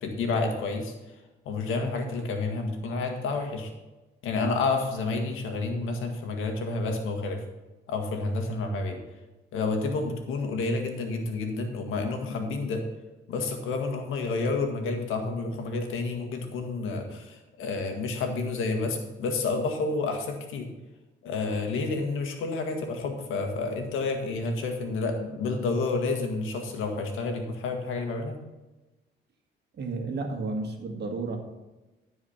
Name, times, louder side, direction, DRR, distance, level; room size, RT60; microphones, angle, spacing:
voice 1, 0.0-0.9 1.5-3.7 4.2-7.4 7.9-9.0 9.5-12.8 13.3-20.7 21.2-28.4, left 3 dB, 90° left, 4 dB, 1.7 m, -29 dB
voice 2, 29.8-31.4, right 3 dB, 55° right, 4 dB, 1.8 m, -32 dB
13.5 x 4.9 x 5.8 m, 1.1 s
cardioid pair, 90°, 20 cm